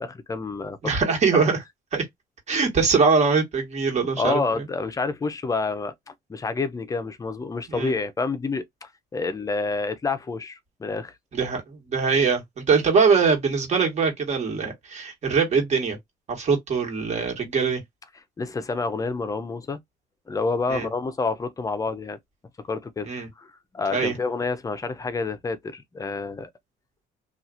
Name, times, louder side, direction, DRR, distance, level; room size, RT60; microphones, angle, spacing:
voice 1, 0.0-1.5 3.9-11.1 18.4-19.8 20.3-22.2 22.7-23.1 23.4-26.5, left 4 dB, 20° left, 0.5 m, -29 dB
voice 2, 0.8-1.6 1.9-2.0 2.5-4.6 7.7-7.9 11.3-16.0 16.3-17.8 20.7-20.9 23.1-23.3 23.9-24.1, right 5 dB, 40° right, 1.6 m, -22 dB
2.8 x 2.4 x 2.5 m
cardioid pair, 110°, 17 cm